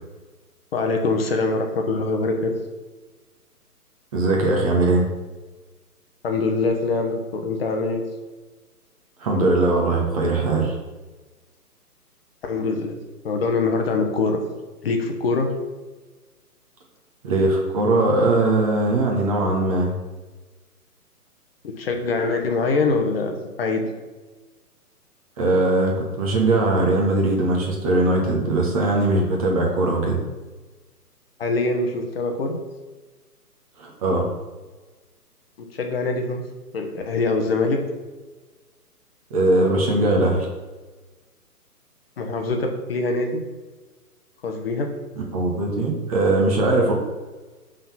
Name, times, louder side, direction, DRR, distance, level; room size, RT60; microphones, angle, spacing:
voice 1, 0.7-2.5 6.2-8.0 12.5-13.0 13.2-14.4 14.8-15.5 21.8-23.9 31.4-32.6 35.7-36.4 36.7-37.8 42.2-43.4 44.4-44.9, left 3 dB, 40° left, 4 dB, 0.8 m, -23 dB
voice 2, 4.1-5.1 9.2-10.8 17.2-19.9 25.4-30.2 33.8-34.3 39.3-40.5 45.2-46.9, right 2 dB, 25° right, -1 dB, 0.8 m, -20 dB
5.4 x 3.8 x 5.5 m, 1.3 s
figure-of-eight pair, 135°, 47 cm